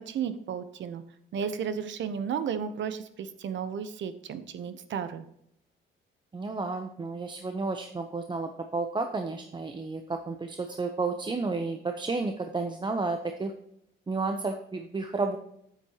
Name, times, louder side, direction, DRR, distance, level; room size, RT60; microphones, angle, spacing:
voice 1, 0.1-1.0 1.3-5.2, right 7 dB, 70° right, 11 dB, 1.0 m, -33 dB
voice 2, 6.3-13.5 14.1-15.4, right 3 dB, 25° right, 6 dB, 0.8 m, -31 dB
9.1 x 8.3 x 3.0 m, 0.74 s
cardioid pair, 90°, 20 cm